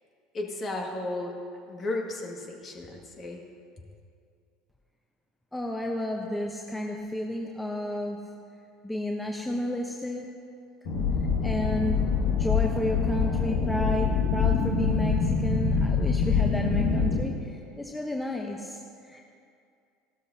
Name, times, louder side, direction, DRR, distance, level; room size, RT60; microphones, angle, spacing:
voice 1, 0.3-1.3 1.7-3.4, left 2 dB, 35° left, 1 dB, 1.9 m, -34 dB
voice 2, 5.5-8.2 8.8-10.2 11.4-19.3, left 1 dB, 10° left, 1 dB, 0.9 m, -32 dB
sound 1, 10.8-17.2, left 5 dB, 60° left, 1.8 m, -25 dB
16.0 x 12.5 x 2.8 m, 2.4 s
hypercardioid pair, 70°, 0 cm